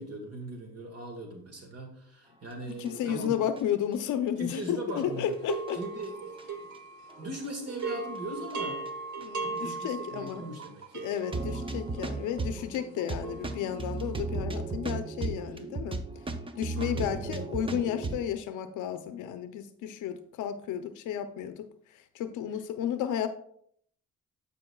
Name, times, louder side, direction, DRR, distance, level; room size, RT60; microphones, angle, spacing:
voice 1, 0.0-3.4 4.4-5.3 5.7-6.3 6.6-6.7 7.0-8.8 9.4-11.0 15.5-15.6 16.7-17.2, right 1 dB, 55° right, 2 dB, 1.7 m, -40 dB
voice 2, 2.8-5.8 9.2-10.4 10.9-16.0 16.6-21.7 22.1-23.3, left 9 dB, 80° left, 9 dB, 0.6 m, -32 dB
sound 1, 2.9-3.6 3.9-4.0 4.6-4.7 5.0-5.1 5.5-6.4 7.1-7.5 7.7-7.8 8.5-8.9 9.2-9.3 9.6-9.7 10.3-10.4 10.6-10.7 11.2-18.2, right 3 dB, 15° right, 0.6 m, -35 dB
sound 2, 5.0-7.4 7.7-14.0, right 4 dB, 70° right, 1.1 m, -38 dB
12.5 x 5.1 x 2.3 m, 0.66 s
cardioid pair, 90°, 30 cm